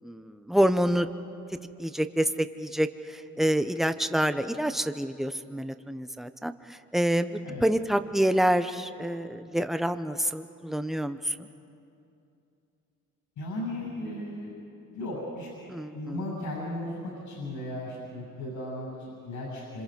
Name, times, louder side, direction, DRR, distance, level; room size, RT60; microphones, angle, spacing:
voice 1, 0.0-1.1 1.8-7.3 7.6-11.5 15.7-16.2, right 1 dB, ahead, 9 dB, 1.0 m, -27 dB
voice 2, 13.4-14.6 14.9-15.5 15.9-19.8, left 1 dB, 80° left, -4 dB, 8.0 m, -36 dB
27.0 x 26.5 x 5.4 m, 2.7 s
cardioid pair, 90°, 30 cm